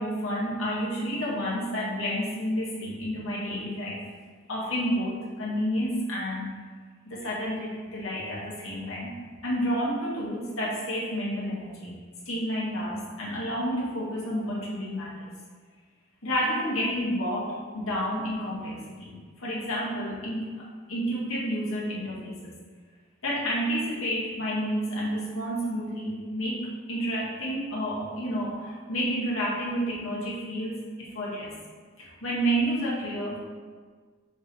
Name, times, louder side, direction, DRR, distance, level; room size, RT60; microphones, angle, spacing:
voice 1, 0.0-4.0 4.5-6.5 7.1-9.1 9.4-11.9 12.3-15.3 16.2-22.5 23.2-31.6 32.0-33.4, equal, 80° left, -6 dB, 2.0 m, -30 dB
7.2 x 3.3 x 6.2 m, 1.5 s
head